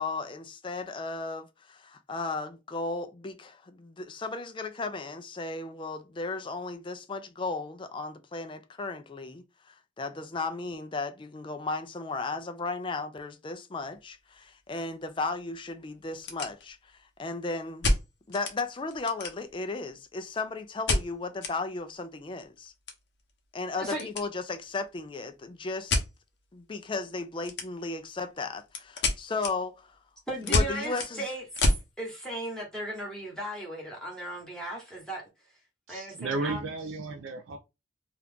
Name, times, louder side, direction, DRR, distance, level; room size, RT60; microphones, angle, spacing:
voice 1, 0.0-16.8 17.2-17.9 18.3-22.7 23.5-26.0 26.5-29.9 30.5-31.3, left 3 dB, 25° left, 0.4 m, -35 dB
sound 1, 13.8-14.0 14.3-14.4 15.0-15.1 15.4-15.5 16.0-17.0 17.8-18.6 18.9-19.7 20.9-21.6 21.9-22.0 22.3-24.3 24.5-24.9 25.9-26.1 27.4-28.0 28.3-31.9, left 2 dB, 65° left, 0.8 m, -29 dB
voice 2, 23.7-24.1 30.3-31.7 32.0-35.2 35.9-36.6, right 1 dB, 5° left, 1.2 m, -36 dB
voice 3, 35.9-37.6, right 3 dB, 85° right, 0.4 m, -33 dB
2.8 x 2.4 x 3.4 m
head